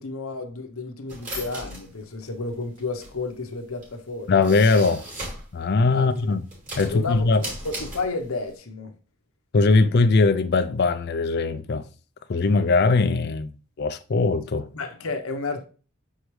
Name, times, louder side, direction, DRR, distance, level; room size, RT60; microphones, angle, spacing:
voice 1, 0.0-4.3 5.9-6.3 6.9-7.3 7.6-8.9 14.7-15.7, left 3 dB, 75° left, 0.9 m, -31 dB
sound 1, 1.1-5.6 5.9-8.5, right 1 dB, 35° right, 2.9 m, -37 dB
voice 2, 4.3-5.1 5.5-6.5 6.8-7.5 9.5-11.9 12.3-13.5 13.8-14.7, left 3 dB, 50° left, 0.4 m, -20 dB
6.4 x 4.8 x 3.2 m
head